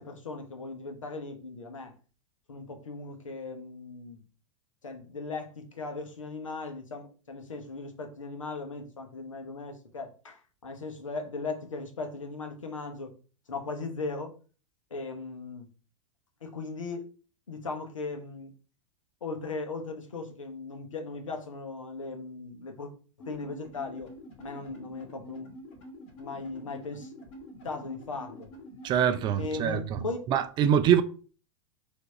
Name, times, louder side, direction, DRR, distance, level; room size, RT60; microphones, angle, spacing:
voice 1, 0.0-1.9 2.5-4.2 4.8-13.2 13.5-14.3 14.9-15.7 16.4-17.1 17.5-18.6 19.2-22.9 23.2-24.1 24.4-25.6 26.2-27.1 27.6-28.5 29.4-30.2, left 3 dB, 75° left, 1.0 m, -38 dB
sound 1, 23.2-29.5, equal, 45° left, 2.1 m, -47 dB
voice 2, 28.8-30.0 30.3-31.0, right 9 dB, 30° right, 0.4 m, -24 dB
4.4 x 2.8 x 4.1 m
figure-of-eight pair, 95°, 16 cm